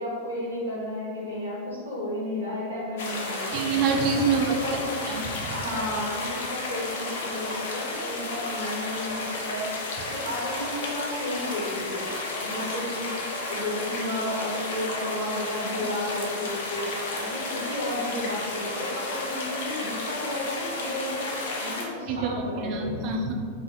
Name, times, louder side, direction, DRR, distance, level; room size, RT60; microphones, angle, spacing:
voice 1, 0.0-3.7 4.4-4.9 5.5-9.7 10.1-12.0 12.4-13.1 13.5-16.8 17.2-22.9, left 1 dB, 85° right, -9 dB, 1.4 m, -33 dB
sound 1, 3.0-21.9, left 2 dB, 55° left, 0.6 m, -32 dB
voice 2, 3.5-4.6 5.1-5.6 22.1-23.3, right 5 dB, 40° right, 2 dB, 0.4 m, -26 dB
4.0 x 2.8 x 3.7 m, 2.1 s
figure-of-eight pair, 90°, 0 cm